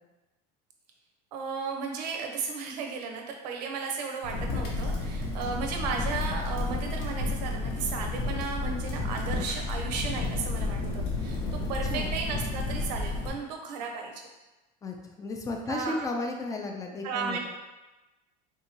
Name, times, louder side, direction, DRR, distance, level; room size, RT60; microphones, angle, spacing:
voice 1, 1.3-14.3 15.7-16.1 17.0-17.4, right 5 dB, 90° right, 2 dB, 0.6 m, -35 dB
Crackle, 4.2-13.3, left 3 dB, 75° left, 1.0 m, -31 dB
voice 2, 11.6-12.2 14.8-17.4, left 2 dB, 15° left, 2 dB, 0.4 m, -34 dB
3.5 x 2.8 x 2.8 m, 1.1 s
supercardioid pair, 110°, 21 cm